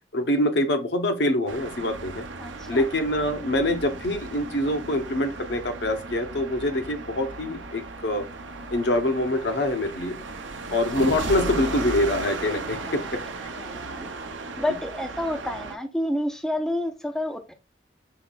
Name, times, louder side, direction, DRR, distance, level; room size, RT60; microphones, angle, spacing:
voice 1, 0.1-2.2 2.7-8.3 8.7-10.2 10.7-13.2, left 1 dB, 70° left, 0.7 m, -25 dB
sound 1, 1.5-15.7, right 3 dB, 90° right, 0.7 m, -36 dB
voice 2, 2.4-2.8 12.8-13.1 13.6-14.1 14.6-17.5, left 1 dB, 5° left, 0.4 m, -29 dB
5.6 x 4.0 x 2.2 m
head